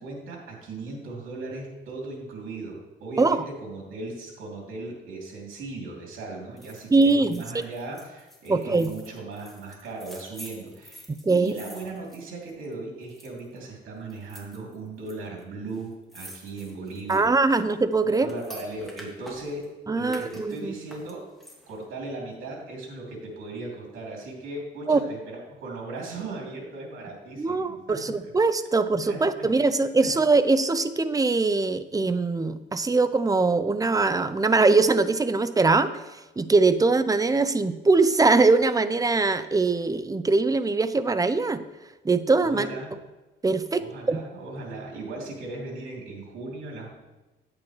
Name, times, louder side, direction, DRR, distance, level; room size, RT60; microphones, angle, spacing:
voice 1, 0.0-17.3 18.0-19.7 20.0-21.2 21.7-28.0 29.0-29.7 30.0-30.1 42.4-42.9 43.8-46.9, right 2 dB, 90° right, -2 dB, 2.9 m, -37 dB
sound 1, 6.6-12.7 13.0-13.6 14.1-15.1 15.4-15.5 15.7-19.7 20.1-21.8 22.2-22.3, equal, ahead, 2.2 m, -48 dB
voice 2, 6.9-7.4 8.5-8.9 11.2-11.5 17.1-18.3 19.9-20.7 24.9-25.0 27.4-41.6 42.0-43.0 43.4-44.2, right 3 dB, 20° right, 12 dB, 0.5 m, -22 dB
10.0 x 8.7 x 3.2 m, 1.1 s
cardioid pair, 90°, 20 cm